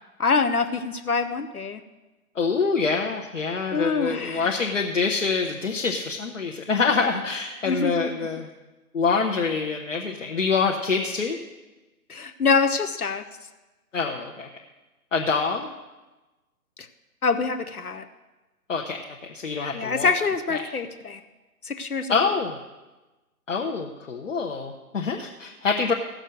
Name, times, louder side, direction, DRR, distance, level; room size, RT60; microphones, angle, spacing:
voice 1, 0.2-1.8 3.7-4.6 7.6-8.1 12.1-13.3 16.8-16.9 17.2-18.1 19.7-21.2 21.6-22.3, left 4 dB, 70° left, 8 dB, 1.0 m, -25 dB
voice 2, 2.3-8.5 8.9-11.4 13.9-14.5 15.1-15.7 18.7-20.1 20.5-20.6 22.1-22.6 23.5-25.9, left 5 dB, 55° left, 1 dB, 1.1 m, -26 dB
15.5 x 6.5 x 6.4 m, 1.1 s
figure-of-eight pair, 140°, 46 cm